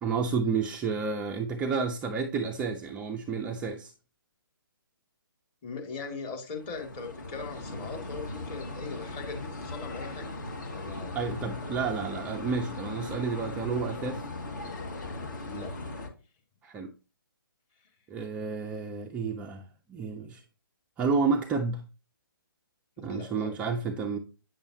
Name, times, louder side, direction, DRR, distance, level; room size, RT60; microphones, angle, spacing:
voice 1, 0.0-3.9 11.1-14.2 16.6-16.9 18.1-20.4 21.0-21.8 23.0-24.2, right 5 dB, 10° right, 0.4 m, -30 dB
voice 2, 5.6-10.3 10.7-11.2 15.4-15.7 23.0-23.5, left 4 dB, 25° left, 2.0 m, -40 dB
sound 1, 6.5-16.1, left 2 dB, 55° left, 2.1 m, -38 dB
8.9 x 6.7 x 2.8 m
figure-of-eight pair, 140°, 12 cm